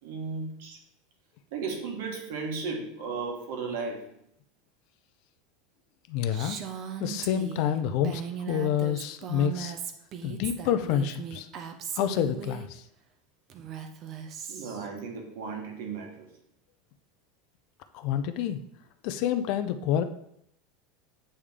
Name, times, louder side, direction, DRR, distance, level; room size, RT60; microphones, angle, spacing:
voice 1, 0.0-0.8 1.5-4.1 14.5-16.3, right 4 dB, 70° right, 2 dB, 1.5 m, -35 dB
voice 2, 6.1-6.6 7.0-9.7 10.2-11.5 12.0-12.8 17.9-18.6 19.0-20.0, left 9 dB, 45° left, 10 dB, 0.5 m, -28 dB
Female speech woman speaking, 6.3-12.7 13.5-14.9, right 8 dB, 30° right, 0.5 m, -38 dB
8.5 x 3.3 x 3.6 m, 0.72 s
supercardioid pair, 170°, 0 cm